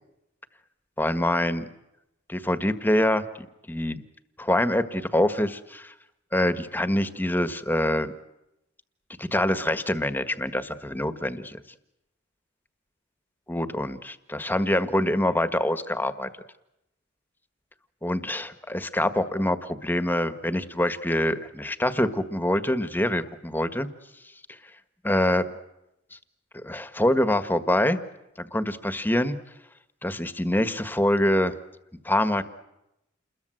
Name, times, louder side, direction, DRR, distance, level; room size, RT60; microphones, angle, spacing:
voice 1, 1.0-1.6 2.3-3.2 3.7-4.0 4.4-5.9 6.3-8.1 9.2-11.6 13.5-16.3 18.0-23.9 25.0-25.5 26.6-28.0 28.4-29.4 30.0-31.5 32.0-32.4, left 1 dB, 10° left, 11 dB, 1.6 m, -25 dB
29.5 x 22.0 x 7.9 m, 0.87 s
head